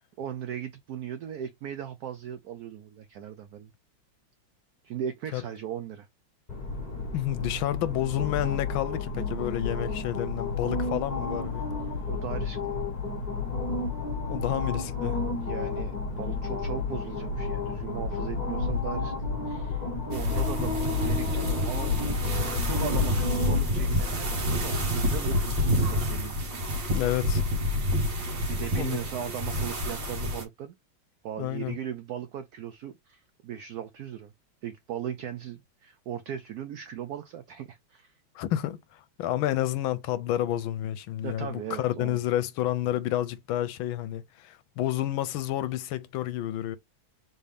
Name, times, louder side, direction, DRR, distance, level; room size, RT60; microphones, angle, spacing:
voice 1, 0.2-3.7 4.8-6.1 12.1-12.8 15.2-15.9 16.2-19.1 19.4-19.8 20.1-22.3 22.6-26.4 28.5-30.8 31.2-34.3 34.6-38.1 41.2-42.2, right 9 dB, 90° right, 0.8 m, -38 dB
sound 1, 6.5-26.0, left 4 dB, 25° left, 1.2 m, -31 dB
voice 2, 7.1-11.7 14.3-15.2 20.6-20.7 26.9-27.4 28.3-28.4 28.7-29.0 31.4-31.8 38.3-46.8, left 13 dB, 85° left, 1.4 m, -30 dB
sound 2, 20.1-30.4, left 1 dB, 65° right, 2.0 m, -28 dB
4.1 x 3.4 x 3.4 m
omnidirectional pair, 2.2 m